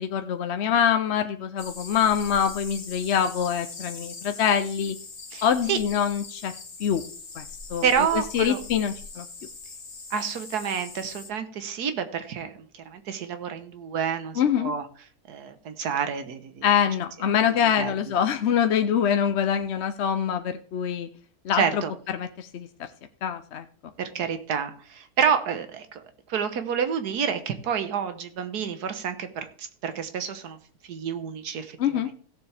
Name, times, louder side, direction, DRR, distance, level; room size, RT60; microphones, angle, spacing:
voice 1, 0.0-5.0 5.4-6.5 6.8-7.0 7.3-7.4 7.7-9.3 14.3-14.7 16.6-21.1 21.4-21.8 22.1-22.9 23.2-23.6 31.8-32.1, left 8 dB, 55° left, 8 dB, 0.8 m, -25 dB
sound 1, 1.6-11.3, left 4 dB, 35° left, 1.2 m, -41 dB
voice 2, 5.3-5.8 7.8-8.6 10.1-14.9 15.3-16.6 17.8-17.9 21.6-21.9 24.0-26.0 26.3-30.6 30.9-31.8 32.0-32.1, right 7 dB, 85° right, 9 dB, 1.6 m, -28 dB
16.5 x 7.1 x 3.4 m, 0.44 s
omnidirectional pair, 1.6 m